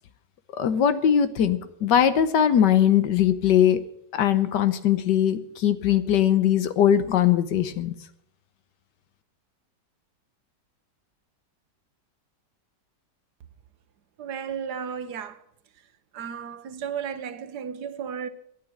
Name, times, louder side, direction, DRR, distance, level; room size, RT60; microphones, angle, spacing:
voice 1, 0.6-3.8 4.1-7.9, left 9 dB, 80° left, 1.5 m, -21 dB
voice 2, 14.2-15.4 16.1-18.3, right 7 dB, 70° right, 1.4 m, -34 dB
12.0 x 8.8 x 8.9 m
omnidirectional pair, 1.9 m